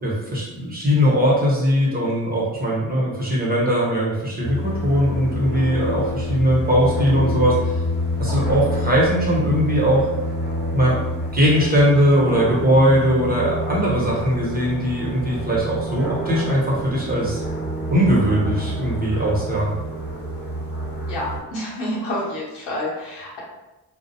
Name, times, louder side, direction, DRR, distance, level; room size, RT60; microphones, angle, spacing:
voice 1, 0.0-7.8 8.2-10.1 10.7-11.0 11.3-17.4 17.9-19.8, equal, 20° right, -5 dB, 1.0 m, -20 dB
sound 1, 4.4-21.4, equal, 25° left, 1.1 m, -27 dB
voice 2, 21.1-23.4, left 1 dB, 90° left, -5 dB, 0.8 m, -28 dB
2.4 x 2.0 x 2.7 m, 1.0 s
cardioid pair, 55°, 42 cm